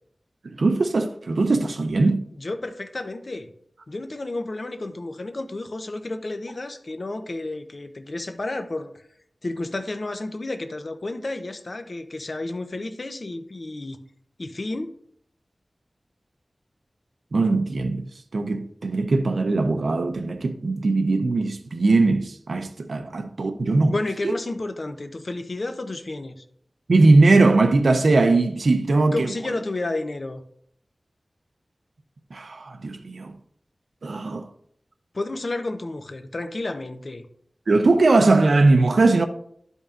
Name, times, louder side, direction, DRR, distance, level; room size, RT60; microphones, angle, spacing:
voice 1, 0.4-2.2 17.3-18.0 18.3-23.9 26.9-29.3 32.3-33.3 34.0-34.5 37.7-39.3, right 3 dB, 85° right, 0.5 m, -20 dB
voice 2, 2.4-3.5 3.9-8.9 9.4-14.0 14.4-14.9 23.6-26.4 29.1-30.4 35.1-37.3, left 2 dB, 55° left, 0.7 m, -31 dB
12.0 x 5.3 x 2.5 m
wide cardioid pair, 80°, 0 cm